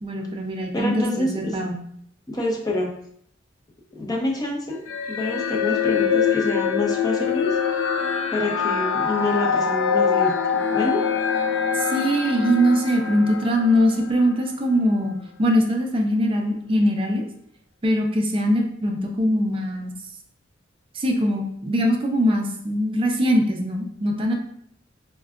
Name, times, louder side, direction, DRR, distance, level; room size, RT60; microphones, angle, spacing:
voice 1, 0.0-1.8 11.7-17.2 17.8-19.9 20.9-24.3, equal, 30° right, 2 dB, 0.4 m, -22 dB
voice 2, 0.7-1.6 2.3-2.9 3.9-7.6 8.3-11.0, left 2 dB, 20° left, 0 dB, 0.5 m, -27 dB
sound 1, 4.9-14.4, left 7 dB, 85° left, 0.4 m, -24 dB
4.4 x 2.1 x 2.4 m, 0.68 s
head